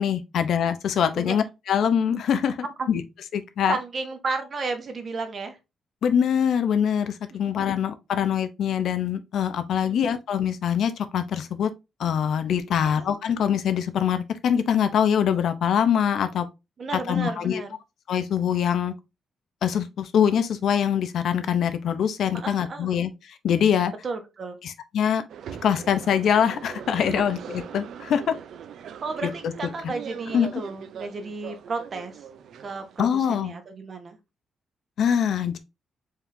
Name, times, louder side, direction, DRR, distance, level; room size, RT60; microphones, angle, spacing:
voice 1, 0.0-2.6 2.9-3.0 3.3-3.8 6.0-11.7 12.0-16.5 17.1-17.6 18.1-18.9 19.6-23.1 23.4-23.9 24.6-25.2 25.6-28.3 29.2-29.5 29.8-29.9 30.3-30.5 33.0-33.5 35.0-35.6, left 8 dB, 65° left, 0.6 m, -23 dB
voice 2, 3.7-5.6 7.4-7.8 9.9-10.2 12.8-13.1 16.8-17.8 22.3-22.9 24.0-24.6 27.1-27.3 27.5-27.6 29.0-32.3 32.6-34.2, right 4 dB, 40° right, 1.0 m, -33 dB
sound 1, 25.3-33.4, right 8 dB, 70° right, 0.5 m, -41 dB
4.6 x 3.6 x 2.6 m
cardioid pair, 140°, 0 cm